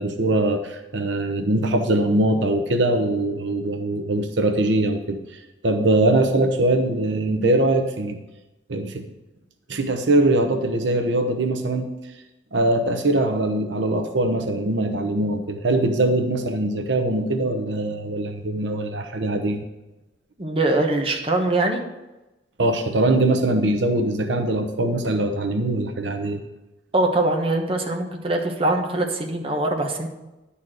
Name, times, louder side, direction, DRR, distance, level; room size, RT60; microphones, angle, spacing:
voice 1, 0.0-8.2 8.7-9.1 9.7-11.9 12.5-19.6 22.6-26.4, right 1 dB, 80° right, 6 dB, 0.9 m, -22 dB
voice 2, 20.4-21.8 26.9-30.1, right 2 dB, 30° right, 2 dB, 1.2 m, -22 dB
10.5 x 4.3 x 7.7 m, 1.0 s
head